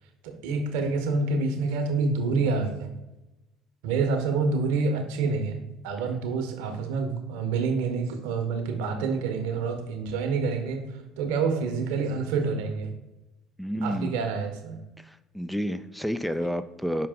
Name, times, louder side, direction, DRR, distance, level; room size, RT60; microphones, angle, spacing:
voice 1, 0.2-2.9 3.8-12.9 13.8-14.8, right 4 dB, 75° right, 6 dB, 0.9 m, -27 dB
voice 2, 13.6-14.1 15.0-17.1, equal, ahead, 11 dB, 0.4 m, -30 dB
5.9 x 4.8 x 3.7 m, 0.98 s
hypercardioid pair, 65°, 0 cm